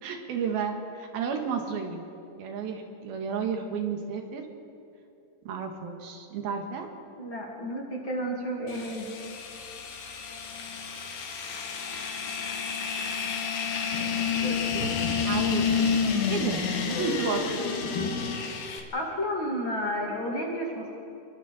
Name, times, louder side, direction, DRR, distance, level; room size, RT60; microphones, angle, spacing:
voice 1, 0.0-2.0 2.4-4.5 5.5-6.9 14.7-15.0 15.2-15.9 16.3-17.5, right 6 dB, 85° right, 3 dB, 3.6 m, -32 dB
voice 2, 7.2-9.1 14.4-14.6 18.9-20.9, equal, 35° left, -1 dB, 2.8 m, -31 dB
sound 1, 8.7-18.8, left 5 dB, 65° left, 3.2 m, -29 dB
28.5 x 22.5 x 4.3 m, 2.7 s
omnidirectional pair, 4.2 m